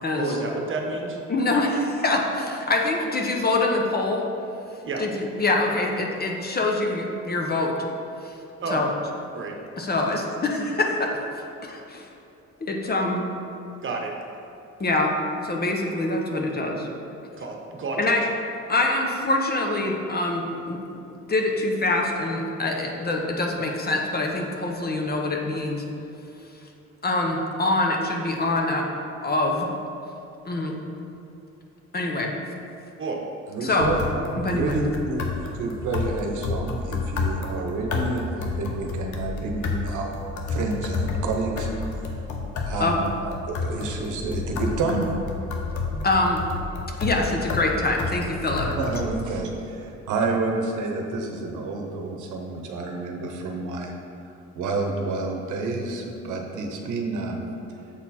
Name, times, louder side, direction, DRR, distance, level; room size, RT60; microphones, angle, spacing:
voice 1, 0.2-1.2 4.8-5.0 8.6-8.8 9.3-9.6 13.8-14.1 17.4-18.1 33.0-33.2, right 3 dB, 40° right, 1 dB, 1.1 m, -30 dB
voice 2, 1.3-4.2 5.0-7.7 8.7-8.9 9.8-11.1 11.6-12.0 12.7-13.2 14.8-15.1 15.4-16.9 18.0-18.2 18.7-20.8 21.3-25.8 27.0-28.8 29.2-29.7 30.5-30.7 31.9-32.3 33.6-33.9 34.4-34.8 42.8-43.0 46.0-46.4 47.0-48.7, left 2 dB, 30° left, 1 dB, 0.9 m, -24 dB
voice 3, 33.5-41.7 42.6-45.1 45.9-46.1 48.6-53.9 54.2-57.5, right 3 dB, 80° right, 2 dB, 0.9 m, -29 dB
sound 1, 33.8-49.1, left 4 dB, 75° left, 0.8 m, -30 dB
7.5 x 4.2 x 4.2 m, 2.8 s
cardioid pair, 90°, 30 cm